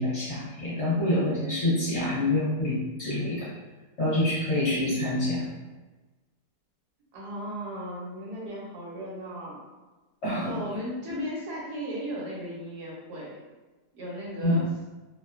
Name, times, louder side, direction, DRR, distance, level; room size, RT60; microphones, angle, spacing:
voice 1, 0.0-3.5 4.0-5.5 10.2-10.6 14.4-14.6, left 1 dB, 50° left, -10 dB, 1.0 m, -26 dB
voice 2, 7.1-9.6 10.4-13.4 13.9-14.7, right 1 dB, 75° right, -4 dB, 1.2 m, -36 dB
2.8 x 2.1 x 2.4 m, 1.2 s
omnidirectional pair, 1.8 m